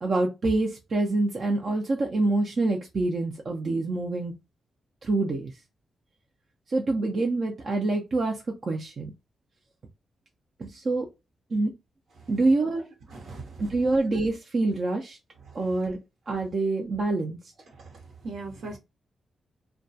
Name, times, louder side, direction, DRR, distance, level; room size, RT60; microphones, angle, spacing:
voice 1, 0.0-4.3 5.0-5.5 6.7-8.4 8.6-9.1 10.6-11.1 11.5-11.7 12.3-12.8 13.6-15.2 15.5-16.0 16.3-17.4, right 2 dB, 50° right, 0.5 m, -26 dB
voice 2, 13.1-13.7 17.8-17.9 18.2-18.8, right 3 dB, 75° right, 0.9 m, -38 dB
2.3 x 2.2 x 2.6 m
cardioid pair, 85°, 0 cm